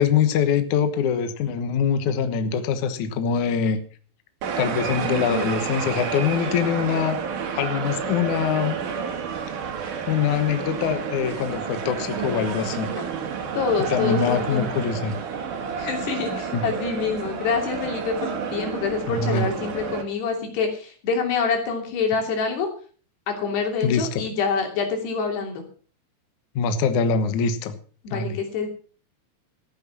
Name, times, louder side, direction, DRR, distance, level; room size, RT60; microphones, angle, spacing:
voice 1, 0.0-3.8 4.6-7.2 7.5-8.8 10.1-12.9 13.9-15.2 16.5-16.7 19.1-19.4 23.8-24.2 26.5-27.8 28.1-28.4, left 7 dB, 80° left, 9 dB, 1.7 m, -23 dB
sound 1, 4.4-20.0, right 6 dB, 55° right, 2.8 m, -30 dB
voice 2, 13.5-14.7 15.8-22.7 23.3-25.6 28.0-28.7, left 5 dB, 60° left, 2 dB, 4.9 m, -26 dB
14.0 x 9.6 x 6.0 m, 0.42 s
omnidirectional pair, 5.4 m